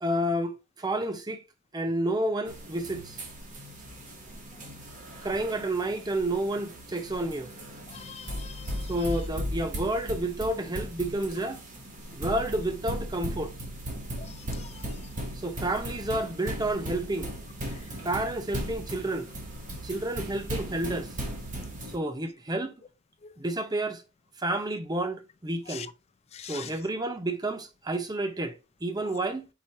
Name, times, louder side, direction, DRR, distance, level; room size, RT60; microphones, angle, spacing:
voice 1, 0.0-1.4 1.7-3.2 5.2-7.5 8.9-11.6 12.1-13.6 15.3-17.3 18.0-19.3 19.8-21.1 21.9-22.7 23.4-24.0 24.4-25.9 26.5-29.5, right 1 dB, 20° right, 0.6 m, -30 dB
sound 1, 2.5-22.0, equal, 35° right, 1.1 m, -37 dB
voice 2, 7.9-8.9 14.2-14.8 19.7-19.8 25.7-25.9 26.3-26.7, left 8 dB, 30° left, 0.3 m, -43 dB
4.8 x 4.2 x 2.6 m
head